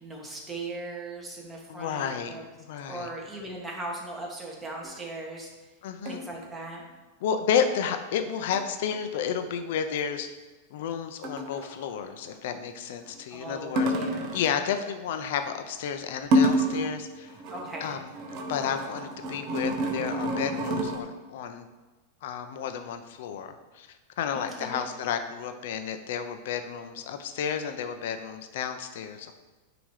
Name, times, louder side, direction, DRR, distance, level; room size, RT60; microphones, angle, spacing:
voice 1, 0.0-2.4 2.9-5.5 6.1-6.9 13.0-14.3 17.5-18.0 24.3-24.8, right 2 dB, 15° right, -2 dB, 1.5 m, -39 dB
voice 2, 1.7-3.1 5.8-6.3 7.2-10.3 10.7-13.9 14.3-17.3 17.8-18.1 18.5-21.7 22.2-29.3, left 7 dB, 65° left, 8 dB, 0.7 m, -31 dB
sound 1, 4.8-5.0 6.1-6.4 8.5-8.7 8.9-9.0 11.2-11.7 13.8-14.5 16.2-17.0 17.3-21.0, equal, 45° right, 1.0 m, -28 dB
9.0 x 3.0 x 4.9 m, 1.2 s
supercardioid pair, 130°, 0 cm